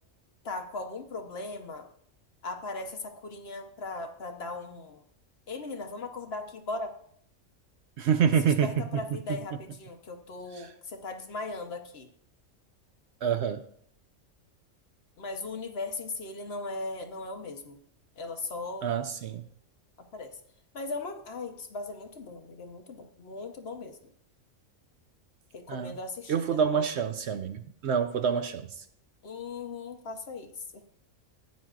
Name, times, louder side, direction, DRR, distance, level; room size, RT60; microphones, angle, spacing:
voice 1, 0.4-1.9 2.4-5.0 5.5-6.9 8.4-12.1 15.2-17.8 18.2-18.9 20.1-20.4 20.7-24.1 25.5-26.6 29.2-30.5 30.7-30.9, left 3 dB, 55° left, 5 dB, 1.1 m, -38 dB
voice 2, 8.0-9.0 13.2-13.6 18.8-19.4 25.7-25.9 26.3-28.7, right 7 dB, 65° right, 9 dB, 0.8 m, -27 dB
15.0 x 9.4 x 2.4 m, 0.66 s
omnidirectional pair, 1.4 m